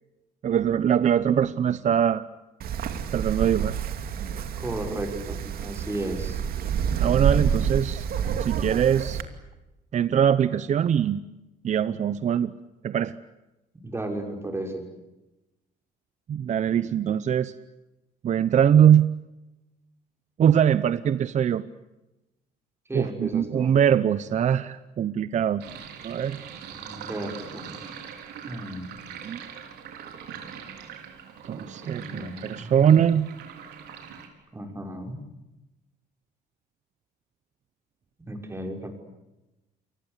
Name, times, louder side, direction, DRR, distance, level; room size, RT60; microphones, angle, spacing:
voice 1, 0.4-2.2 3.1-3.8 7.0-8.0 8.4-9.2 9.9-11.2 11.6-12.5 12.8-13.1 16.3-17.5 18.2-19.1 20.4-21.6 22.9-25.6 26.0-26.4 29.2-29.4 31.4-33.3, right 9 dB, 45° right, 14 dB, 0.9 m, -22 dB
Wind, 2.6-9.2, right 8 dB, 60° right, 2.6 m, -28 dB
voice 2, 4.6-6.4 13.8-14.9 22.9-23.7 26.7-27.8 28.5-28.9 31.8-33.0 34.5-35.2 38.2-38.9, right 1 dB, 15° right, 3 dB, 6.0 m, -34 dB
Sink (filling or washing), 25.6-34.3, right 7 dB, 80° right, 4.8 m, -42 dB
29.5 x 24.0 x 8.3 m, 1.0 s
cardioid pair, 110°, 17 cm